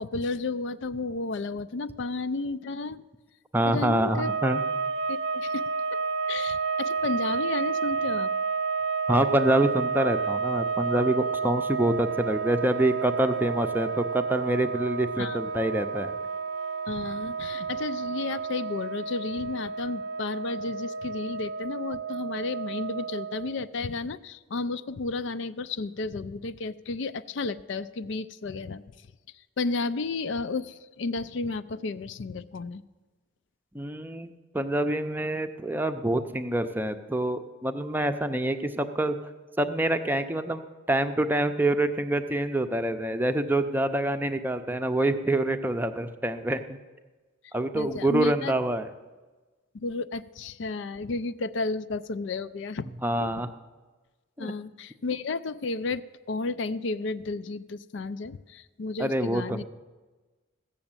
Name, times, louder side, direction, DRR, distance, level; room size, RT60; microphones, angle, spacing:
voice 1, 0.0-3.0 3.6-4.3 5.1-5.6 5.9-6.0 6.3-8.3 15.2-15.4 16.9-28.8 29.6-32.8 47.7-48.5 49.7-52.9 53.2-53.5 54.4-59.6, left 3 dB, 60° left, 14 dB, 0.4 m, -32 dB
voice 2, 3.5-4.6 9.1-16.1 33.7-34.3 34.5-39.2 39.6-46.8 47.5-48.9 53.0-53.5 54.4-54.5 59.0-59.6, right 1 dB, 10° right, 8 dB, 0.6 m, -26 dB
sound 1, 4.0-23.7, right 5 dB, 60° right, 0.6 m, -31 dB
15.5 x 7.0 x 8.8 m, 1.3 s
head